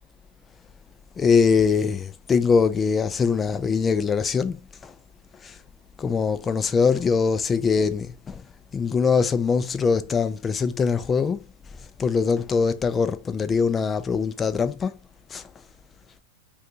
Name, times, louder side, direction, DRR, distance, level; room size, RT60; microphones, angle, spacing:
voice 1, 1.2-4.9 5.4-5.5 6.0-8.4 8.7-11.4 12.0-15.0 15.3-15.4, left 5 dB, 20° left, 0.4 m, -22 dB
2.7 x 2.3 x 3.8 m
hypercardioid pair, 115°, 0 cm